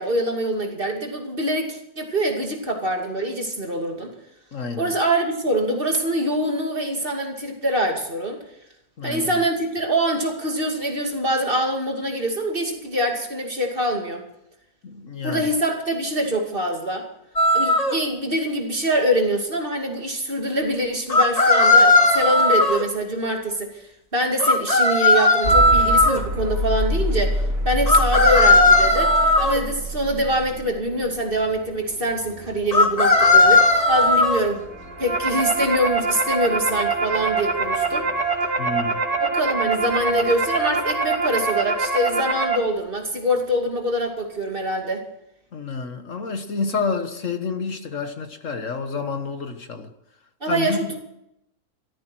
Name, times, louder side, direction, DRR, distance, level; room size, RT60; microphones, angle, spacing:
voice 1, 0.0-4.1 4.8-8.4 9.0-14.2 15.2-17.1 17.5-23.9 24.1-34.7 35.0-38.1 39.2-45.0 50.4-51.0, right 1 dB, 35° right, 2 dB, 2.7 m, -24 dB
voice 2, 4.5-5.0 9.0-9.4 14.8-15.4 38.6-39.0 45.5-49.9 50.5-50.9, left 5 dB, 55° left, 7 dB, 1.6 m, -29 dB
sound 1, 17.4-18.0 21.1-22.8 24.4-26.2 27.9-29.6 32.7-34.4, left 2 dB, 25° left, 1.8 m, -16 dB
sound 2, 25.4-41.4, equal, 60° right, 3.2 m, -30 dB
sound 3, 34.7-42.6, right 4 dB, 80° right, 2.6 m, -24 dB
14.5 x 14.0 x 6.2 m, 0.82 s
omnidirectional pair, 1.6 m